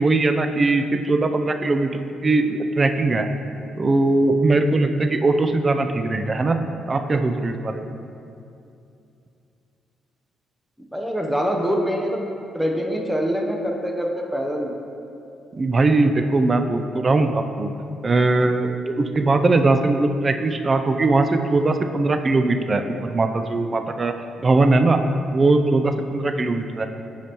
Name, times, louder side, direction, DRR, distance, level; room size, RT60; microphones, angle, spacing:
voice 1, 0.0-3.3 3.8-6.6 6.9-7.9 15.5-17.7 18.0-24.1 24.4-25.0 25.3-26.9, right 2 dB, 30° right, 7 dB, 0.4 m, -20 dB
voice 2, 10.9-12.2 12.5-14.8, equal, 5° right, 1 dB, 0.8 m, -24 dB
8.2 x 4.9 x 3.0 m, 2.6 s
cardioid pair, 90°, 0 cm